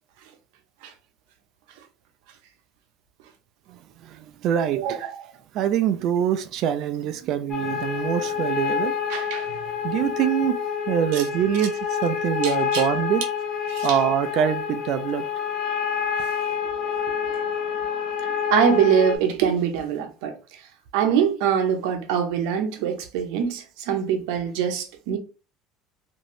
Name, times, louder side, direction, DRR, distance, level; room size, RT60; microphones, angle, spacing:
voice 1, 3.7-5.0 5.5-8.9 9.8-10.6 10.9-13.2 13.8-15.2, right 10 dB, 50° right, 0.3 m, -24 dB
voice 2, 4.8-5.2 9.1-9.5 11.1-11.2 12.4-12.8 13.7-14.0 18.5-20.7 20.9-25.2, right 8 dB, 80° right, 0.7 m, -24 dB
sound 1, 7.5-19.2, left 7 dB, 35° left, 0.6 m, -27 dB
3.0 x 2.6 x 2.6 m
cardioid pair, 140°, 0 cm